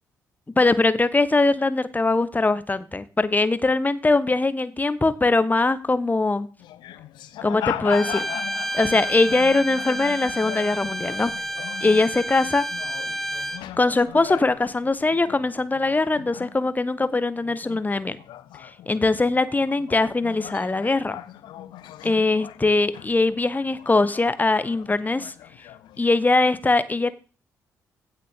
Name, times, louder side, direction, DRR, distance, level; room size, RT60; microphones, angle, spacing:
voice 1, 0.6-6.5 7.4-8.2 8.7-11.3 11.8-12.6 13.8-18.2 18.6-21.2 22.0-25.3 26.0-27.1, left 3 dB, 20° left, 15 dB, 1.0 m, -21 dB
sound 1, 6.6-17.1 17.4-26.1, left 12 dB, 60° left, 0.8 m, -39 dB
Bowed string instrument, 7.9-13.6, right 1 dB, ahead, 1.4 m, -30 dB
15.5 x 6.7 x 3.7 m, 0.37 s
figure-of-eight pair, 40°, 9 cm